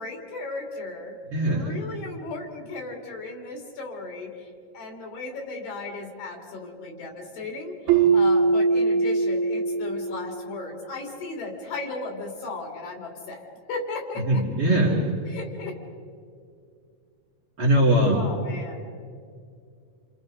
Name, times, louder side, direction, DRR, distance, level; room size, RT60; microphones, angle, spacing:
voice 1, 0.0-1.2 1.5-14.4 15.3-15.8 18.1-18.9, left 3 dB, 85° left, 1 dB, 5.1 m, -36 dB
voice 2, 1.3-1.7 7.9-8.1 14.2-15.2 17.6-18.3, right 1 dB, 35° right, -4 dB, 4.8 m, -22 dB
Keyboard (musical), 7.9-10.7, right 4 dB, 85° right, 2.7 m, -22 dB
29.5 x 28.0 x 5.4 m, 2.3 s
omnidirectional pair, 3.9 m